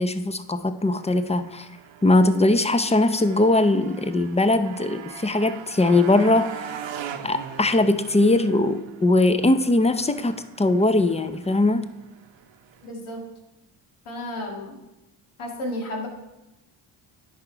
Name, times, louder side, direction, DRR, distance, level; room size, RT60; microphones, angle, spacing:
voice 1, 0.0-1.7 2.0-6.8 7.2-11.8, left 2 dB, 15° left, 11 dB, 0.7 m, -20 dB
Motorcycle, 0.8-12.9, right 9 dB, 65° right, 0.9 m, -41 dB
voice 2, 12.8-13.2 14.1-14.8 15.4-16.1, left 1 dB, 75° left, 0 dB, 2.1 m, -32 dB
10.5 x 4.9 x 4.6 m, 0.96 s
supercardioid pair, 55°, 49 cm